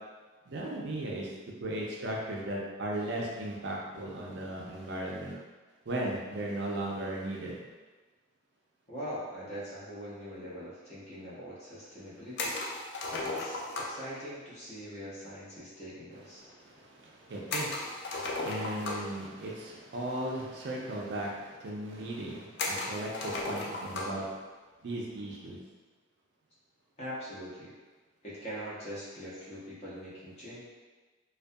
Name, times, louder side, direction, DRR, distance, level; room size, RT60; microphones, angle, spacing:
voice 1, 0.5-1.3 1.6-5.4 5.9-7.6 16.4-24.3 24.8-25.6, right 1 dB, 55° right, -2 dB, 0.4 m, -37 dB
voice 2, 8.9-12.5 13.1-13.6 13.8-16.4 27.0-27.7 28.2-30.6, equal, 30° left, -9 dB, 0.7 m, -42 dB
sound 1, 12.4-14.1 17.5-19.2 20.3-20.4 20.7-20.8 21.5-21.6 22.6-24.2, left 2 dB, 55° left, 0.3 m, -35 dB
2.3 x 2.2 x 2.5 m, 1.3 s
head